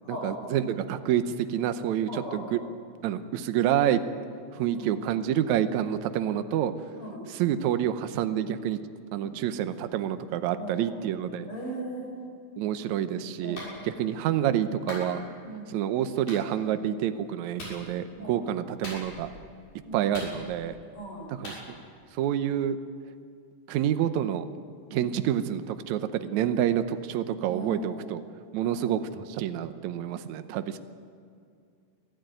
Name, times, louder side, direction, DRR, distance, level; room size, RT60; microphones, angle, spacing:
voice 1, 0.1-2.6 3.0-4.0 4.5-6.7 7.3-8.8 9.1-11.5 12.6-13.6 13.8-15.2 15.7-19.3 19.9-20.8 21.3-21.6 22.1-22.8 23.7-24.5 24.9-28.2 28.5-30.8, right 10 dB, 70° right, 10 dB, 2.0 m, -28 dB
voice 2, 4.6-4.9 6.9-7.2 9.2-9.4 10.6-11.0 11.5-12.1 13.4-14.3 15.4-15.8 18.2-18.5 19.9-20.2 20.9-21.3 27.5-28.0 28.6-28.8, right 1 dB, 40° left, -3 dB, 8.4 m, -39 dB
Clapping, 13.6-13.8 14.9-15.1 16.3-16.4 17.6-17.8 18.8-19.3 20.1-20.7 21.4-21.6, left 1 dB, 85° left, 8.2 m, -39 dB
24.0 x 14.0 x 9.2 m, 2.3 s
omnidirectional pair, 3.8 m